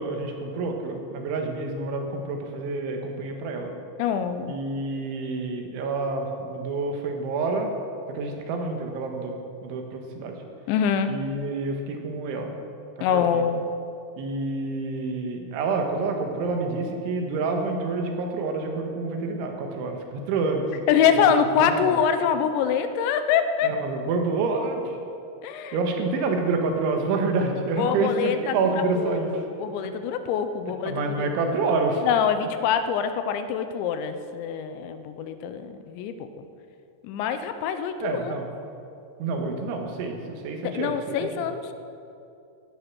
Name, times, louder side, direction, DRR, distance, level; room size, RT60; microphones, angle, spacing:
voice 1, 0.0-3.7 4.5-7.7 8.1-9.4 9.6-10.4 11.1-12.5 13.1-13.4 14.2-20.7 21.6-22.0 23.6-25.0 25.7-29.4 30.9-32.1 38.0-38.5 39.2-41.0, right 3 dB, 90° right, 3 dB, 3.9 m, -28 dB
voice 2, 4.0-4.6 10.7-11.2 13.0-13.6 20.9-23.7 25.4-25.8 27.8-31.3 32.0-36.5 37.0-38.3 40.6-41.7, left 7 dB, 80° left, 9 dB, 3.0 m, -25 dB
16.0 x 11.0 x 6.1 m, 2.6 s
omnidirectional pair, 5.3 m